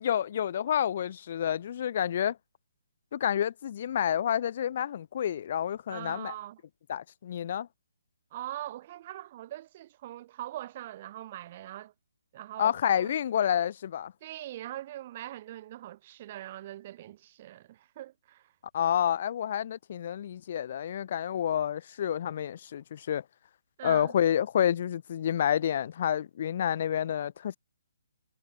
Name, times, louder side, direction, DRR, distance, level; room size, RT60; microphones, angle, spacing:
voice 1, 0.0-2.4 3.1-6.3 6.9-7.7 12.6-14.1 18.7-23.2 23.8-27.6, left 9 dB, 40° left, 0.4 m, -29 dB
voice 2, 5.9-6.6 8.3-11.9 12.3-13.1 14.2-18.5 23.8-24.1, right 14 dB, 35° right, 1.0 m, -42 dB
figure-of-eight pair, 135°, 0 cm